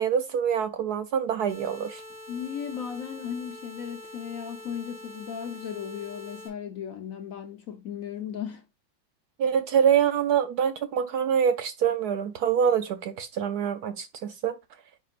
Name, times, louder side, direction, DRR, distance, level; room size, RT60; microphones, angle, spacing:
voice 1, 0.0-2.0 9.4-14.5, right 8 dB, 70° right, 1.0 m, -25 dB
sound 1, 1.5-6.5, left 1 dB, 30° right, 2.2 m, -44 dB
voice 2, 2.3-8.6, left 8 dB, 60° left, 0.9 m, -36 dB
9.3 x 4.5 x 2.4 m
omnidirectional pair, 2.1 m